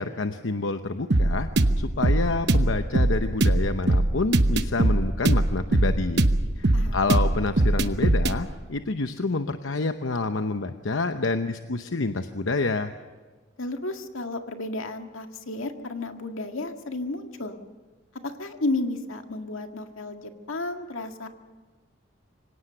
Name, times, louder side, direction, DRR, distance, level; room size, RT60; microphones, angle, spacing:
voice 1, 0.0-1.5 1.8-6.2 6.6-12.9, left 3 dB, 70° left, 8 dB, 0.9 m, -28 dB
sound 1, 1.1-8.4, right 1 dB, 55° right, 1.0 m, -21 dB
voice 2, 13.6-17.6 18.2-21.3, left 2 dB, 85° left, 5 dB, 1.9 m, -32 dB
25.5 x 17.5 x 6.8 m, 1.4 s
head